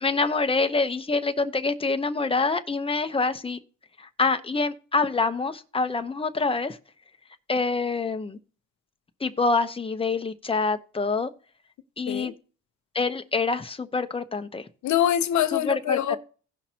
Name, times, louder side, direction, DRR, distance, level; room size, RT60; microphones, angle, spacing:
voice 1, 0.0-3.6 4.0-6.8 7.5-8.4 9.2-11.3 12.0-12.3 12.9-14.6 15.5-16.2, left 3 dB, 20° left, 0.9 m, -26 dB
voice 2, 14.8-16.2, left 10 dB, 70° left, 0.8 m, -24 dB
17.0 x 5.9 x 2.9 m
cardioid pair, 90°, 30 cm